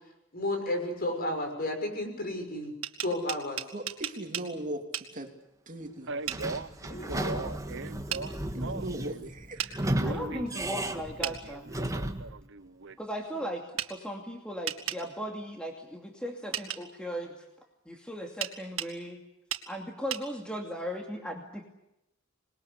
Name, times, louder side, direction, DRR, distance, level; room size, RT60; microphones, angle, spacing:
voice 1, 0.3-2.7 3.0-3.6 6.9-7.4 10.1-10.2, left 1 dB, 50° left, 4 dB, 6.5 m, -32 dB
sound 1, 2.6-4.5 4.9-5.1 6.3-6.4 8.1-8.2 9.6-9.7 11.2-11.4 13.8-13.9 14.7-15.0 16.5-16.8 18.4-18.9 19.5-19.7 20.1-20.2, right 10 dB, 85° right, 2.2 m, -34 dB
voice 2, 3.7-4.9 5.1-5.3 5.7-6.1 8.5-9.6, right 1 dB, 40° right, 4 dB, 2.9 m, -38 dB
Male speech man speaking, 6.1-9.3 9.6-12.9, right 3 dB, 65° right, 0.9 m, -39 dB
Sliding door / Squeak, 6.3-12.4, right 1 dB, 15° right, 1.7 m, -34 dB
voice 3, 10.0-11.7 13.0-17.5 17.8-19.2 19.7-21.7, equal, 5° left, 1 dB, 2.6 m, -37 dB
27.0 x 21.0 x 8.3 m, 0.87 s
head